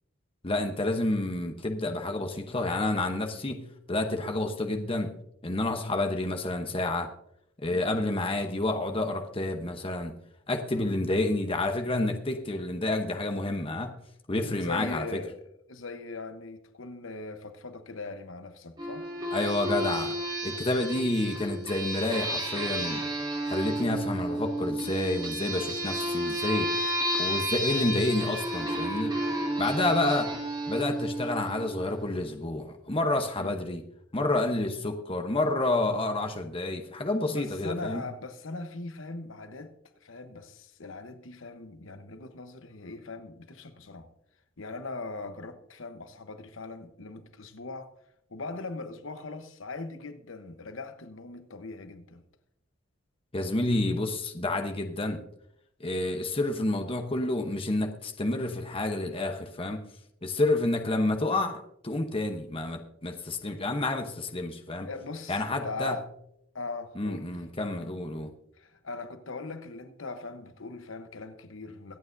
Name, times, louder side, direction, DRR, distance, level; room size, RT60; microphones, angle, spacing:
voice 1, 0.4-5.1 5.4-7.1 7.6-10.1 10.5-13.9 14.3-15.2 19.3-20.2 20.4-23.1 23.5-26.7 27.2-29.1 29.6-30.3 30.7-33.8 34.1-38.0 53.3-55.2 55.8-59.8 60.2-64.9 65.3-66.0 67.0-68.3, left 2 dB, 25° left, 0.9 m, -29 dB
voice 2, 14.4-15.4 15.7-19.1 33.4-33.5 37.3-39.7 40.0-44.1 44.6-47.9 48.3-52.2 64.8-66.0 66.5-67.4 68.6-72.0, left 3 dB, 70° left, 1.0 m, -40 dB
sound 1, 18.8-32.0, right 1 dB, 20° right, 2.2 m, -32 dB
24.0 x 8.7 x 2.6 m
head